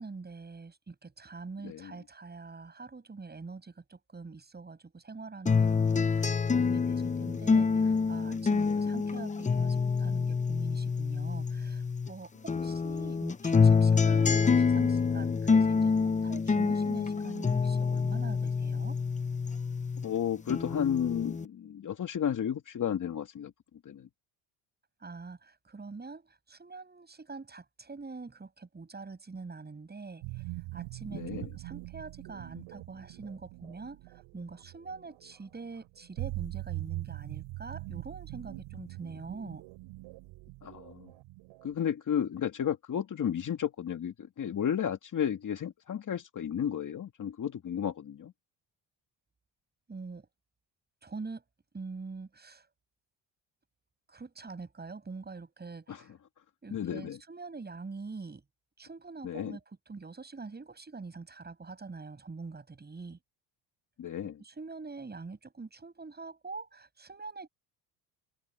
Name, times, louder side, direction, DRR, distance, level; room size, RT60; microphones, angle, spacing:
voice 1, 0.0-5.7 5.9-15.9 16.2-19.0 25.0-30.2 30.7-34.0 34.3-39.6 49.9-50.3 51.0-51.4 51.7-52.7 54.1-56.1 56.6-58.4 58.8-59.6 59.9-63.2 64.4-67.5, right 4 dB, 20° right, 7.1 m, -44 dB
voice 2, 1.6-1.9 8.6-8.9 12.6-12.7 20.0-23.5 23.8-24.1 31.1-31.5 40.6-41.1 41.6-48.3 55.9-56.0 56.7-57.2 59.2-59.6 64.0-64.4, left 9 dB, 40° left, 2.5 m, -33 dB
sound 1, 5.5-12.1 12.5-20.1 20.5-21.5, left 5 dB, 15° left, 0.8 m, -27 dB
sound 2, 30.2-41.8, right 21 dB, 80° right, 7.0 m, -42 dB
cardioid pair, 105°, 47 cm